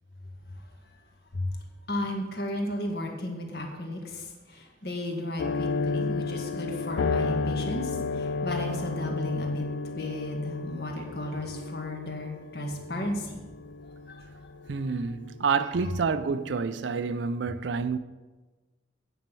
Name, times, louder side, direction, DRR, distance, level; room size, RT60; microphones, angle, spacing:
voice 1, 1.9-9.6 9.9-13.4 14.1-14.2 14.7-14.9, left 1 dB, 55° left, 1.7 m, -34 dB
sound 1, 5.4-15.9 16.2-16.3 16.9-17.1, left 3 dB, 85° left, 0.5 m, -32 dB
voice 2, 14.7-18.0, right 5 dB, 75° right, 0.4 m, -28 dB
9.1 x 5.7 x 7.6 m
head